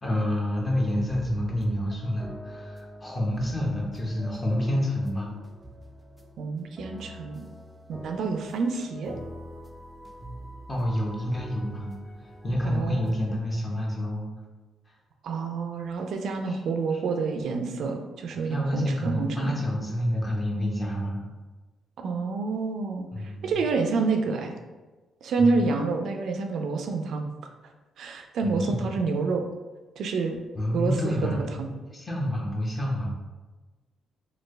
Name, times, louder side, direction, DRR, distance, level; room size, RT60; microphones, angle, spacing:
voice 1, 0.0-5.3 10.7-14.3 14.9-15.0 16.5-16.6 16.9-17.0 18.4-21.3 23.1-23.5 25.4-25.6 28.4-28.8 30.5-33.2, left 1 dB, 25° left, -2 dB, 0.9 m, -28 dB
sound 1, 0.5-13.4, equal, ahead, 0.4 m, -44 dB
voice 2, 6.4-7.4 7.9-9.2 12.6-13.1 15.2-19.6 22.0-23.1 23.4-24.5 25.2-27.3 28.0-29.4 30.0-30.4 30.7-31.7, right 4 dB, 70° right, 4 dB, 0.3 m, -28 dB
3.3 x 2.3 x 3.2 m, 1.2 s
cardioid pair, 90°, 0 cm